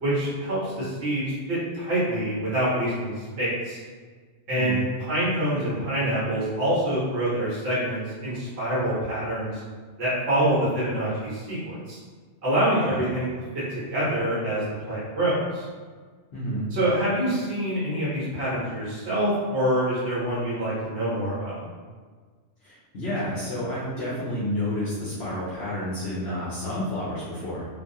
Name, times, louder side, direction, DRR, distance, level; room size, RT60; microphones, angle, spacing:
voice 1, 0.0-3.8 4.5-9.6 10.0-12.0 12.4-13.3 13.5-15.7 16.7-21.6, right 1 dB, 60° right, -9 dB, 1.1 m, -26 dB
voice 2, 4.5-4.8 12.8-13.0 16.3-16.7 22.6-27.7, left 1 dB, 65° left, -9 dB, 0.9 m, -30 dB
2.6 x 2.2 x 2.6 m, 1.5 s
omnidirectional pair, 1.3 m